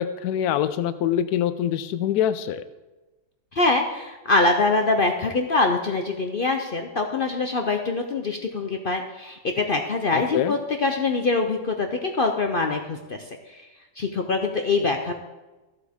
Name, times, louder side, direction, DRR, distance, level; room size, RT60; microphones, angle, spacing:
voice 1, 0.0-2.6 10.3-10.5, left 10 dB, 75° left, 12 dB, 1.1 m, -24 dB
voice 2, 3.5-13.7 14.0-15.1, left 3 dB, 50° left, 4 dB, 0.6 m, -24 dB
14.5 x 8.0 x 3.6 m, 1.1 s
omnidirectional pair, 1.8 m